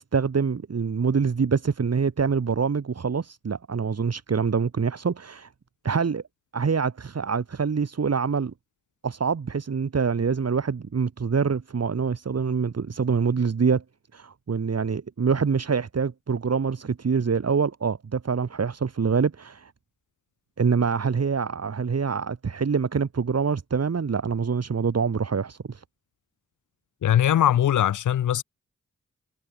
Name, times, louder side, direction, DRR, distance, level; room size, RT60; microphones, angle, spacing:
voice 1, 0.0-5.5 5.8-6.2 6.5-8.5 9.0-13.8 14.1-19.7 20.6-25.8, right 5 dB, 55° right, 2.6 m, -25 dB
voice 2, 27.0-28.4, left 11 dB, 85° left, 0.8 m, -21 dB
cardioid pair, 55°, 29 cm